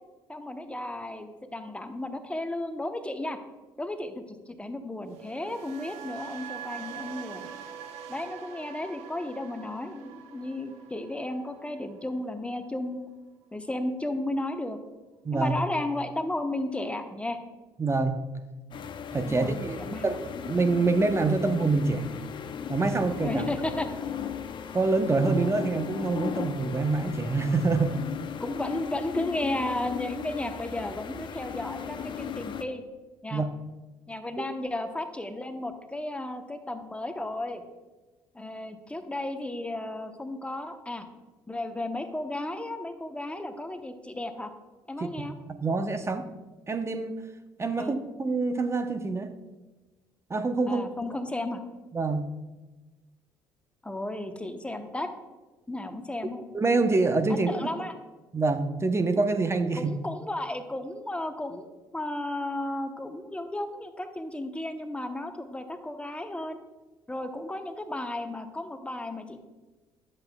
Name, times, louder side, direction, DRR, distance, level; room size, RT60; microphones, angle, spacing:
voice 1, 0.3-3.4 3.8-7.5 8.1-13.0 13.5-14.8 15.3-17.4 19.2-20.1 23.2-23.9 28.4-32.8 33.2-33.4 34.1-37.6 38.3-41.1 41.5-44.5 44.9-45.3 47.8-48.0 50.7-51.6 53.8-55.1 55.7-56.4 57.3-57.9 59.7-66.6 67.1-69.4, left 1 dB, 10° left, 7 dB, 0.9 m, -34 dB
sound 1, 5.0-13.2 13.4-13.8, right 8 dB, 70° right, 0.7 m, -44 dB
voice 2, 15.2-15.6 17.8-18.2 19.1-22.1 22.7-23.4 24.7-28.0 33.3-33.5 34.4-34.5 45.0-45.3 45.6-46.3 46.7-47.2 47.6-49.3 50.3-50.9 51.9-52.3 56.5-57.7 58.3-59.9, right 3 dB, 25° right, 8 dB, 0.8 m, -26 dB
sound 2, 18.7-32.6, left 8 dB, 45° left, 0.6 m, -37 dB
10.5 x 7.6 x 2.3 m, 1.2 s
hypercardioid pair, 55°, 11 cm